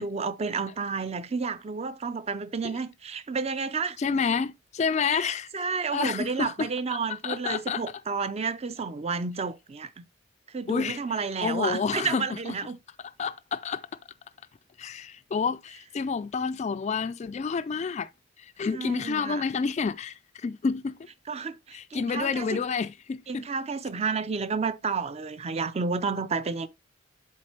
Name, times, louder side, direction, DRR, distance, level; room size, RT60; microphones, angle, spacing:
voice 1, 0.0-4.2 5.0-10.0 10.5-12.8 18.7-19.5 21.3-22.6 23.3-26.7, right 5 dB, 30° right, 0.4 m, -31 dB
voice 2, 4.0-6.7 7.2-7.8 10.7-11.0 11.4-12.5 13.2-13.9 14.8-18.1 18.4-21.0 21.7-23.4, left 5 dB, 35° left, 0.3 m, -29 dB
7.6 x 4.0 x 4.4 m
head